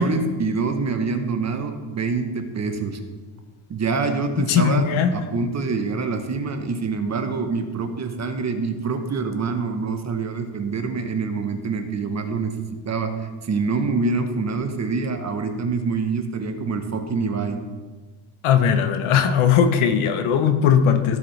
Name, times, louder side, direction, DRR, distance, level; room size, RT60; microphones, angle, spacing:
voice 1, 0.0-3.0 3.7-4.8 5.1-12.5 12.9-17.6, right 4 dB, 35° right, 6 dB, 0.9 m, -25 dB
voice 2, 4.5-5.1 18.4-21.2, left 7 dB, 75° left, 9 dB, 0.9 m, -18 dB
15.5 x 5.1 x 3.2 m, 1.3 s
cardioid pair, 135°, 50 cm